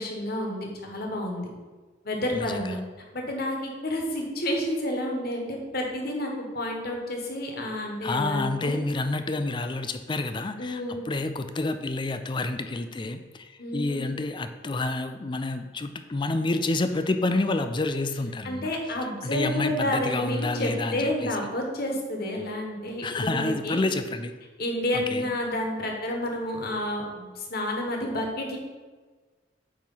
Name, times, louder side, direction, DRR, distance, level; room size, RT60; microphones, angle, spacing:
voice 1, 0.0-1.5 2.0-2.8 3.1-8.8 10.6-11.1 13.6-14.1 18.4-23.8 24.6-28.6, left 1 dB, 55° left, 1 dB, 1.3 m, -30 dB
voice 2, 2.3-2.8 8.0-18.7 19.2-21.3 23.0-24.3 24.9-25.3, left 2 dB, 25° left, 9 dB, 0.4 m, -29 dB
8.7 x 3.2 x 5.5 m, 1.4 s
head